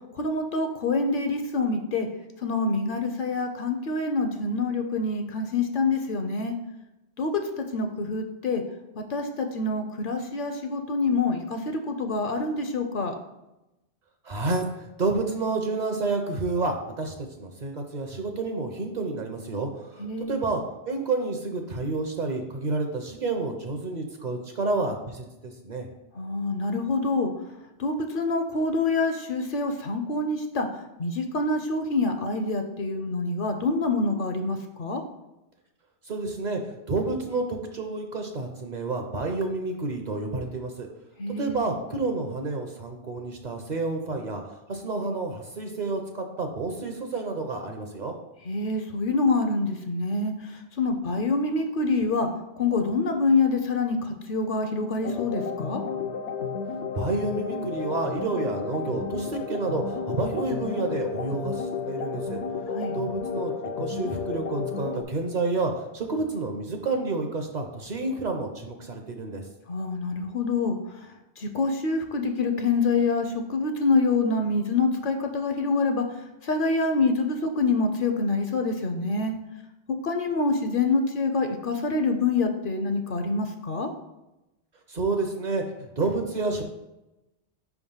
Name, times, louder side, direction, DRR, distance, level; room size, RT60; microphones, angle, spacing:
voice 1, 0.2-2.1 2.4-6.5 7.2-7.3 7.6-8.6 9.0-13.1 20.0-20.4 26.2-27.3 27.8-30.7 31.0-35.0 41.2-41.6 48.5-52.3 52.6-55.8 62.7-63.0 69.7-70.8 71.4-76.0 76.4-79.3 80.0-83.9, left 3 dB, 60° left, 5 dB, 0.7 m, -26 dB
voice 2, 14.2-14.6 15.0-20.6 20.9-25.9 36.1-40.9 41.4-48.1 56.9-62.4 62.9-69.4 84.9-86.6, right 3 dB, 50° right, 4 dB, 0.6 m, -29 dB
sound 1, 55.0-65.0, left 5 dB, 85° left, 0.9 m, -32 dB
5.2 x 3.5 x 5.4 m, 0.96 s
omnidirectional pair, 1.1 m